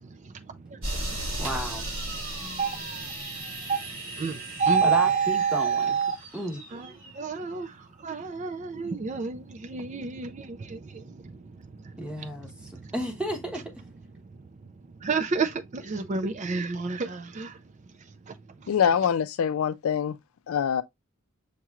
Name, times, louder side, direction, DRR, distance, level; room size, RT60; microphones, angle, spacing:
voice 1, 0.1-1.4 2.2-6.2 6.7-12.9 14.2-14.5 15.0-17.6 18.0-18.7, right 5 dB, 35° right, 0.4 m, -30 dB
sound 1, 0.8-7.2, right 1 dB, 65° right, 3.2 m, -36 dB
voice 2, 1.4-1.9 4.8-6.0 6.3-7.0 12.0-13.8, equal, 5° right, 1.0 m, -33 dB
voice 3, 18.7-20.2 20.5-20.8, left 8 dB, 75° left, 0.4 m, -24 dB
6.5 x 3.0 x 2.3 m
head